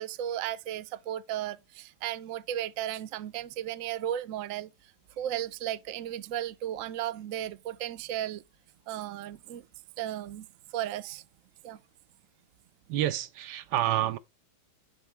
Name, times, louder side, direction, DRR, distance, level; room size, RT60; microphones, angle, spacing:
voice 1, 0.0-4.7 5.2-8.4 8.9-9.7 10.0-10.5 10.7-11.2 11.6-11.8, right 11 dB, 65° right, 0.9 m, -35 dB
voice 2, 12.9-14.2, right 13 dB, 85° right, 1.2 m, -28 dB
10.5 x 3.9 x 3.3 m
omnidirectional pair, 1.8 m